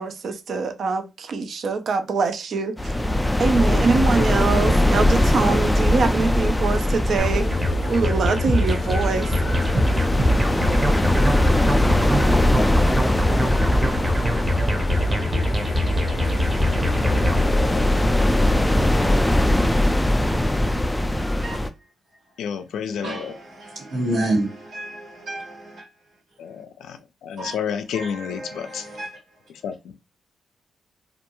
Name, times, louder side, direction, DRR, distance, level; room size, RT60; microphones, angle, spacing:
voice 1, 0.0-3.0 3.4-7.5 7.9-9.3, right 4 dB, 65° right, 0.5 m, -24 dB
sound 1, 2.8-21.7, left 1 dB, 10° left, 0.3 m, -21 dB
sound 2, 7.2-17.5, equal, 15° right, 0.7 m, -23 dB
sound 3, 7.3-19.2, left 3 dB, 35° left, 0.7 m, -32 dB
voice 2, 21.2-21.6 22.9-25.9 27.4-27.5 27.9-29.1, right 1 dB, 85° right, 1.3 m, -29 dB
voice 3, 22.4-23.3 26.4-28.9 29.6-29.9, left 7 dB, 85° left, 0.3 m, -30 dB
2.4 x 2.2 x 2.9 m
cardioid pair, 85°, 0 cm